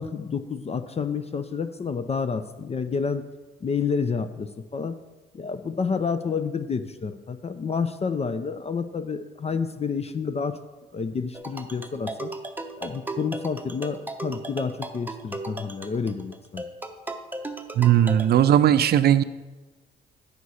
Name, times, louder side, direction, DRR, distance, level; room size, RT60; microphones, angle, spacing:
voice 1, 0.0-3.2 3.6-5.0 5.3-10.6 10.9-12.3 12.8-16.6, left 5 dB, 30° left, 10 dB, 0.5 m, -29 dB
sound 1, 11.3-18.3, right 2 dB, 10° right, 0.8 m, -36 dB
voice 2, 17.8-19.2, right 10 dB, 50° right, 15 dB, 0.4 m, -18 dB
8.1 x 6.2 x 4.2 m, 1.2 s
supercardioid pair, 55°, 21 cm